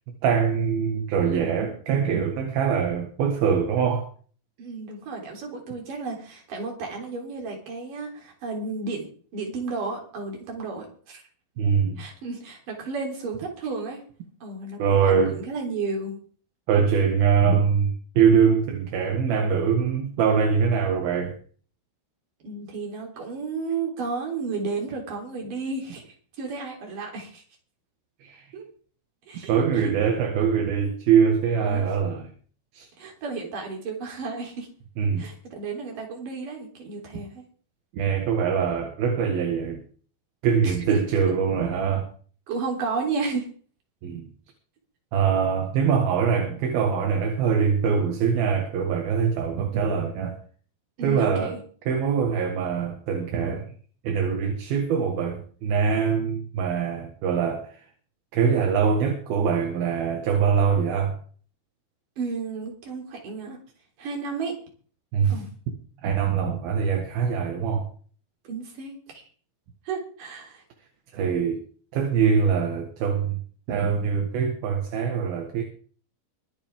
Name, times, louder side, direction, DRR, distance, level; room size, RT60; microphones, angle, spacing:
voice 1, 0.2-4.1 11.6-12.0 14.8-15.4 16.7-21.4 28.2-28.5 29.5-32.3 32.7-32.9 35.0-35.3 37.9-39.8 40.4-42.1 44.0-44.3 45.1-50.4 51.0-51.6 51.9-53.7 54.0-57.9 58.3-61.2 65.1-65.4 66.0-67.9 71.1-71.6 71.9-73.4 73.7-75.6, right 6 dB, 75° right, 3.6 m, -23 dB
voice 2, 4.6-11.2 12.0-14.0 14.4-16.2 22.4-27.4 28.5-28.7 29.3-29.9 31.6-31.8 33.0-34.7 35.2-37.4 40.6-41.0 42.5-43.5 51.0-51.6 62.2-63.6 64.0-64.6 65.3-65.5 68.5-69.2 69.9-70.6, right 4 dB, 60° right, 5.2 m, -33 dB
23.5 x 8.9 x 3.7 m
omnidirectional pair, 4.4 m